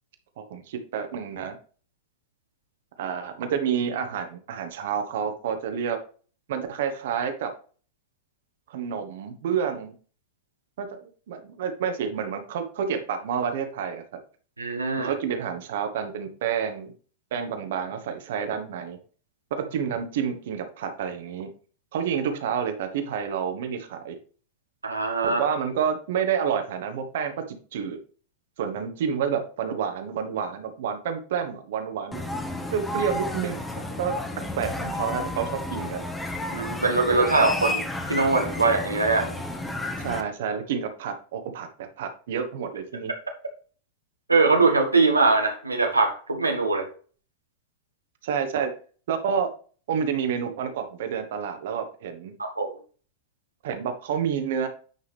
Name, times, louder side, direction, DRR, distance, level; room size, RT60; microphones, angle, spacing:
voice 1, 0.4-1.5 3.0-6.0 6.5-7.5 8.7-9.9 10.8-14.0 15.0-16.9 17.3-19.0 19.5-21.5 21.9-24.2 25.2-28.0 28.6-32.2 32.7-34.1 34.6-36.0 40.0-43.1 48.2-48.7 49.1-49.5 49.9-52.3 53.6-54.7, right 7 dB, 55° right, 7 dB, 1.3 m, -29 dB
voice 2, 14.6-15.1 24.8-25.4 36.5-37.8 38.1-39.4 44.3-46.9 52.4-52.7, right 3 dB, 80° right, 3 dB, 1.3 m, -22 dB
sound 1, 32.1-40.2, left 2 dB, 10° left, 1.2 m, -32 dB
9.4 x 5.5 x 3.4 m, 0.41 s
figure-of-eight pair, 90°, 0 cm